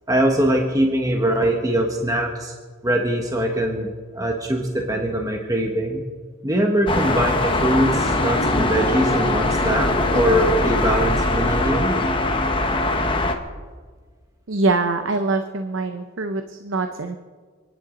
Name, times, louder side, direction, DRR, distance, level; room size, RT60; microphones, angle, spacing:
voice 1, 0.1-2.5 2.8-6.0 6.4-12.0, right 1 dB, 15° right, 1 dB, 1.3 m, -22 dB
sound 1, 6.9-13.3, left 2 dB, 25° left, 1.2 m, -21 dB
voice 2, 14.5-17.2, right 3 dB, 75° right, 7 dB, 0.8 m, -23 dB
29.5 x 10.5 x 3.9 m, 1.5 s
head